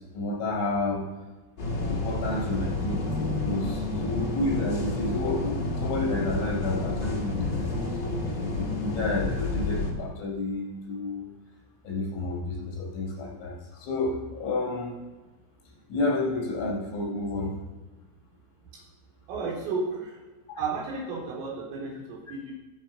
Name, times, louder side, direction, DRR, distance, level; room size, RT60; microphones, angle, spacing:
voice 1, 0.1-1.0 1.7-7.7 8.2-11.3 11.8-14.9 15.9-17.5, left 2 dB, 75° left, -5 dB, 7.7 m, -30 dB
sound 1, 1.6-9.9, left 2 dB, 35° left, 1.9 m, -30 dB
voice 2, 19.3-20.2 20.6-22.5, right 4 dB, 75° right, -3 dB, 6.1 m, -32 dB
21.0 x 7.6 x 5.7 m, 1.2 s
omnidirectional pair, 5.8 m